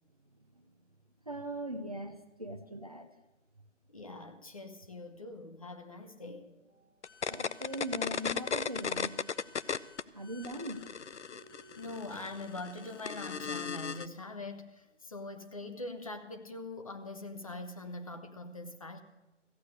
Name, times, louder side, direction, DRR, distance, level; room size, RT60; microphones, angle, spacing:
voice 1, 1.3-3.1 7.3-9.2 10.1-10.9, right 1 dB, 30° right, 0.6 m, -40 dB
voice 2, 3.9-6.5 11.8-19.0, left 2 dB, 30° left, 0.8 m, -43 dB
sound 1, 3.9-11.9, right 2 dB, 5° left, 1.1 m, -65 dB
sound 2, 7.0-10.0 10.3-14.1, left 6 dB, 70° left, 0.6 m, -36 dB
14.5 x 8.1 x 7.8 m
figure-of-eight pair, 155°, 36 cm